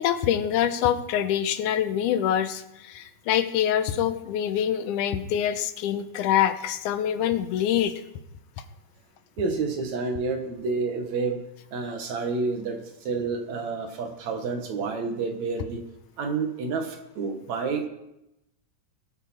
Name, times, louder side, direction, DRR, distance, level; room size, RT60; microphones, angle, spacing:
voice 1, 0.0-8.0, left 10 dB, 90° left, 10 dB, 2.3 m, -25 dB
voice 2, 9.4-11.4 11.7-15.8 16.2-17.9, right 4 dB, 65° right, 4 dB, 2.8 m, -29 dB
20.5 x 9.2 x 4.4 m, 0.88 s
omnidirectional pair, 3.5 m